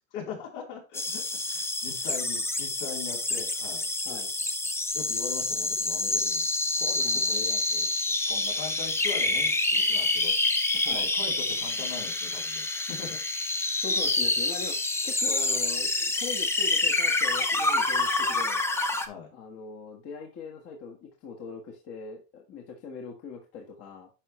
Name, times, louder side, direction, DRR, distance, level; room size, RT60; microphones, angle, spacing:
voice 1, 0.1-3.9 4.9-6.5 6.8-7.9 8.2-10.6 10.9-13.2 19.1-19.3, left 7 dB, 75° left, -1 dB, 3.7 m, -41 dB
sound 1, 0.9-19.1, left 2 dB, 5° left, 0.6 m, -27 dB
voice 2, 7.0-7.4 10.7-11.1 13.8-18.6 19.3-24.1, left 5 dB, 40° left, 0 dB, 1.5 m, -41 dB
10.5 x 5.0 x 3.1 m, 0.32 s
supercardioid pair, 135°, 36 cm